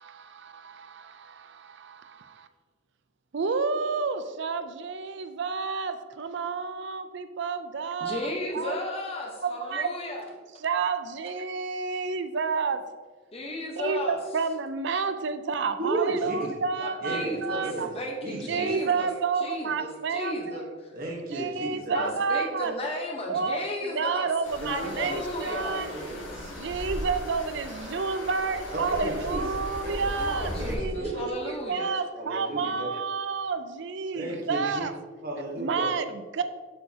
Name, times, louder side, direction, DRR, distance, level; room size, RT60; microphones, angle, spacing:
voice 1, 0.0-2.5 3.3-8.3 8.5-8.8 9.4-9.9 10.1-10.2 10.6-12.8 13.8-17.9 18.5-20.7 21.3-22.7 23.3-25.9 26.5-34.9 35.6-36.4, right 5 dB, 70° right, 0.5 m, -30 dB
voice 2, 8.0-10.2 13.3-14.2 16.8-17.7 17.9-19.1 19.4-20.9 21.9-24.3 24.7-25.8 30.1-31.9, left 1 dB, 30° left, 1.0 m, -34 dB
voice 3, 15.8-16.5 17.0-17.4 17.6-17.9 18.2-18.7 20.9-22.1 24.6-25.2 25.9-26.5 28.9-29.5 29.8-29.9 30.6-31.3 32.1-32.9 34.1-34.8 35.2-35.9, right 2 dB, 50° right, 1.3 m, -33 dB
sound 1, 24.4-30.8, left 1 dB, 90° left, 1.9 m, -37 dB
8.0 x 6.8 x 2.9 m
head